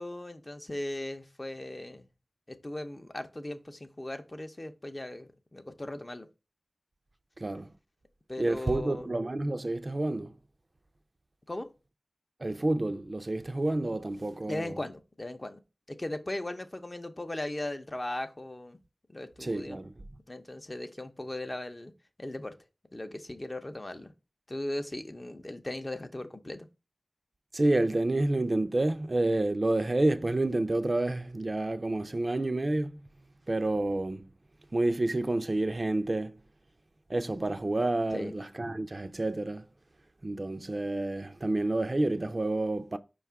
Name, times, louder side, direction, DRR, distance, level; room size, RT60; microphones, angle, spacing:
voice 1, 0.0-2.1 2.5-6.3 8.3-9.1 11.5-11.7 14.5-15.6 15.9-18.8 19.1-19.8 20.3-21.9 22.2-22.6 22.9-24.1 24.5-26.7 38.1-38.3, left 1 dB, 35° left, 0.6 m, -38 dB
voice 2, 7.4-7.7 8.4-10.3 12.4-14.7 19.4-20.0 27.5-33.0 33.5-34.3 34.7-36.4 37.1-39.7 40.2-43.0, right 2 dB, 45° right, 0.4 m, -29 dB
4.9 x 2.3 x 4.5 m
cardioid pair, 45°, 0 cm